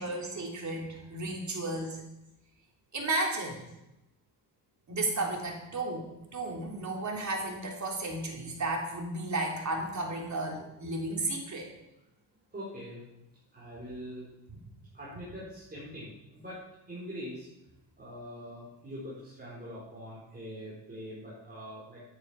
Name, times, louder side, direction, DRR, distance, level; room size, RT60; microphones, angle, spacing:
voice 1, 0.0-2.0 2.9-3.6 4.9-11.7, right 2 dB, 40° right, 0 dB, 3.5 m, -33 dB
voice 2, 12.5-13.0 13.5-14.3 14.9-16.6 16.9-17.5 18.0-22.0, equal, 20° right, -7 dB, 4.8 m, -43 dB
11.0 x 9.7 x 5.9 m, 0.91 s
cardioid pair, 100°, 42 cm